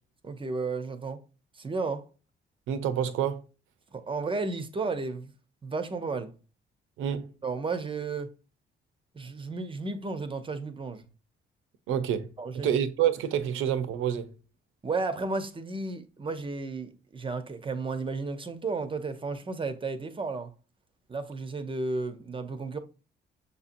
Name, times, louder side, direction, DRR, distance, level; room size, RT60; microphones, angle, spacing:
voice 1, 0.2-1.2 1.6-2.1 3.9-5.3 5.6-6.3 7.4-8.3 9.1-11.1 12.4-12.8 14.8-20.5 21.1-22.8, right 3 dB, 25° right, 0.6 m, -33 dB
voice 2, 2.7-3.4 7.0-7.3 11.9-12.3 12.5-14.3, right 9 dB, 90° right, 0.6 m, -28 dB
6.7 x 2.8 x 2.5 m
cardioid pair, 90°, 20 cm